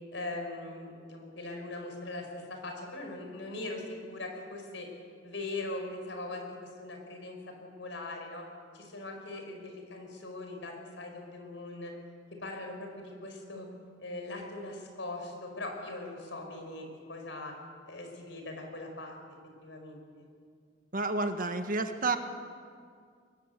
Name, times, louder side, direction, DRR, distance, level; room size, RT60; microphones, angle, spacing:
voice 1, 0.1-4.9 5.2-8.5 8.7-11.9 12.4-13.7 14.0-17.5 17.9-19.2 19.6-20.0, left 2 dB, 75° left, 3 dB, 5.5 m, -40 dB
voice 2, 20.9-22.2, right 3 dB, 50° right, 7 dB, 1.5 m, -30 dB
22.5 x 20.5 x 8.2 m, 2.1 s
head